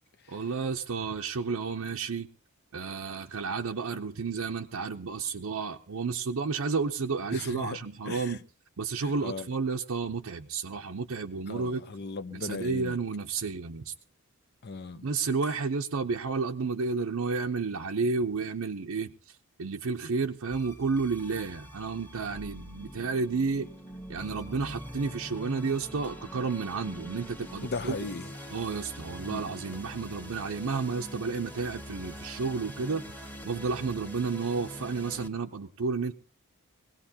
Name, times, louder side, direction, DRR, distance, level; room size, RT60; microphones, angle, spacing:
voice 1, 0.3-2.3 2.7-8.4 8.8-11.8 12.3-13.9 15.0-23.7 24.1-28.0 28.5-36.2, right 4 dB, 75° right, 0.7 m, -31 dB
voice 2, 7.3-7.8 8.1-8.4 9.0-9.5 11.5-13.0 14.6-15.1 27.6-28.5 29.3-29.4, left 4 dB, 50° left, 0.7 m, -37 dB
sound 1, 20.5-35.3, equal, 10° left, 1.3 m, -44 dB
22.5 x 17.5 x 2.8 m
head